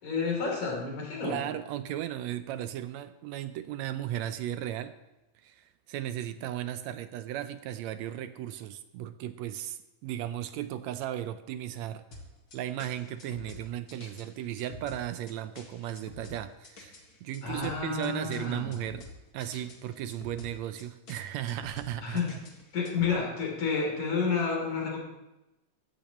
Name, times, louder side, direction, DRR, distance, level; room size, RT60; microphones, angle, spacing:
voice 1, 0.0-1.4 17.4-18.7 22.0-22.3 22.7-25.0, left 5 dB, 75° left, -1 dB, 4.7 m, -30 dB
voice 2, 1.2-4.9 5.4-12.2 12.5-22.4, right 12 dB, 80° right, 11 dB, 1.8 m, -36 dB
sound 1, 12.1-23.1, left 2 dB, 40° left, 1.7 m, -48 dB
16.0 x 14.0 x 3.1 m, 0.98 s
omnidirectional pair, 3.4 m